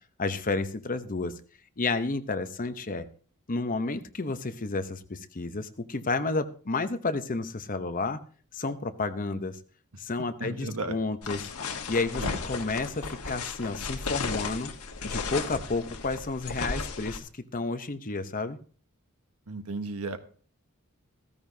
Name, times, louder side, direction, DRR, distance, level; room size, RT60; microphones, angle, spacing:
voice 1, 0.2-1.3 1.8-3.1 3.5-8.2 8.5-9.6 10.0-11.5 11.9-14.7 15.0-18.6, left 3 dB, 40° left, 9 dB, 0.8 m, -31 dB
voice 2, 10.4-11.0 12.2-12.4 19.5-20.2, right 2 dB, 90° right, 8 dB, 1.3 m, -34 dB
sound 1, 11.2-17.2, left 4 dB, 90° left, 1.3 m, -34 dB
15.5 x 14.0 x 2.8 m, 0.42 s
head